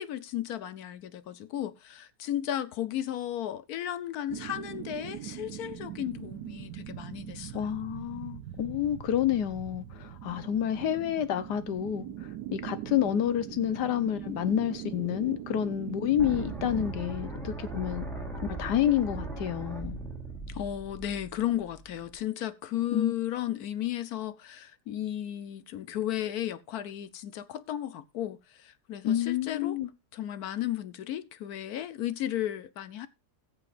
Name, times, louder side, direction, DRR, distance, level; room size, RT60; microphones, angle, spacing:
voice 1, 0.0-7.7 20.5-29.8 30.1-33.1, left 12 dB, 70° left, 1.2 m, -34 dB
sound 1, 4.3-16.9, right 12 dB, 85° right, 1.3 m, -41 dB
voice 2, 7.5-18.1 18.4-20.0 22.9-23.1 29.0-29.9, left 10 dB, 90° left, 1.5 m, -29 dB
sound 2, 16.2-22.2, right 2 dB, ahead, 2.7 m, -39 dB
20.5 x 6.9 x 2.5 m
omnidirectional pair, 1.7 m